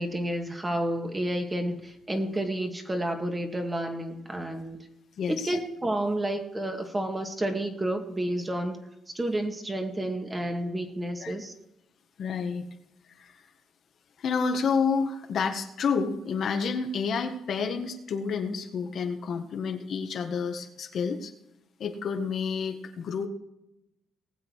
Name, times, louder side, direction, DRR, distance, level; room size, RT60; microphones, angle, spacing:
voice 1, 0.0-4.8 5.3-8.8 9.1-11.5, right 1 dB, 20° right, 4 dB, 2.2 m, -30 dB
voice 2, 5.2-5.6 11.2-11.3 12.2-12.7 13.2-13.3 14.2-21.3 21.8-23.3, left 5 dB, 60° left, 5 dB, 1.6 m, -29 dB
19.5 x 7.8 x 4.8 m, 0.87 s
cardioid pair, 90°, 0 cm